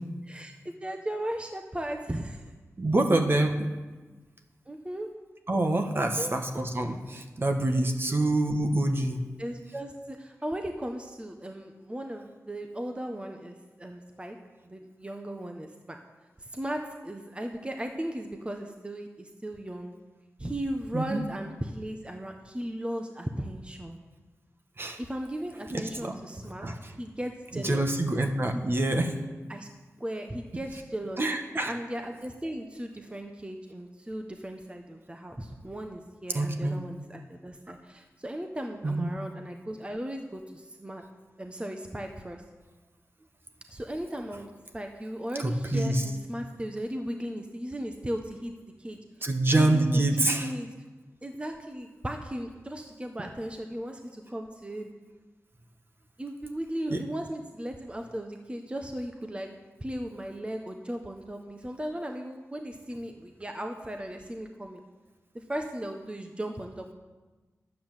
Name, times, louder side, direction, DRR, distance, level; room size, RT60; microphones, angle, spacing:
voice 1, 0.2-2.4 4.7-5.1 6.2-6.4 8.1-8.2 9.4-14.4 14.6-16.0 16.4-19.9 20.4-24.0 25.0-26.7 27.0-27.9 28.5-28.6 29.5-29.7 30.0-31.2 31.6-41.0 41.4-42.4 43.7-48.5 48.8-50.7 51.2-54.9 56.2-59.5 59.8-64.8 65.3-66.9, right 1 dB, 20° right, 4 dB, 1.1 m, -36 dB
voice 2, 2.8-3.6 5.5-9.2 20.9-21.2 24.8-25.0 25.7-26.1 26.6-26.7 27.6-29.1 31.2-31.7 36.3-36.8 38.8-39.1 45.7-46.0 49.2-50.5 56.9-57.0, right 1 dB, 40° right, 4 dB, 1.4 m, -26 dB
10.5 x 8.5 x 7.5 m, 1.3 s
cardioid pair, 50°, 6 cm